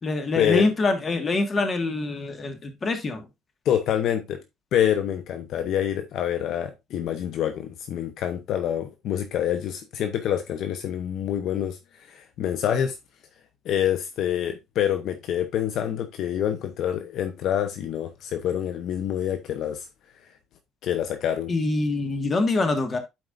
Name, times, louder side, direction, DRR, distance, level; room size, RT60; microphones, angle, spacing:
voice 1, 0.0-3.2 21.5-23.0, left 3 dB, 30° left, 1.7 m, -25 dB
voice 2, 3.6-4.4 4.7-12.9 13.6-19.9 20.8-21.5, left 10 dB, 60° left, 0.9 m, -26 dB
11.5 x 4.7 x 2.5 m
cardioid pair, 115°, 0 cm